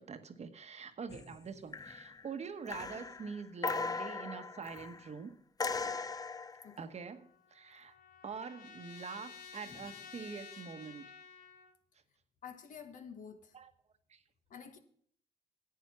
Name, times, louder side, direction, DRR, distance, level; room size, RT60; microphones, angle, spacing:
voice 1, 0.0-5.3 6.8-7.9 8.2-11.1 13.5-13.7 14.1-14.2, right 5 dB, 50° right, 1.1 m, -45 dB
sound 1, 1.1-1.5 1.7-2.3 2.7-5.1 5.6-6.7 9.7-9.9, left 4 dB, 25° left, 0.6 m, -39 dB
Trumpet, 7.0-11.7, left 7 dB, 80° left, 0.9 m, -52 dB
voice 2, 12.4-13.5 14.5-14.8, left 7 dB, 60° left, 1.3 m, -49 dB
10.5 x 8.4 x 6.0 m
supercardioid pair, 60°, 15 cm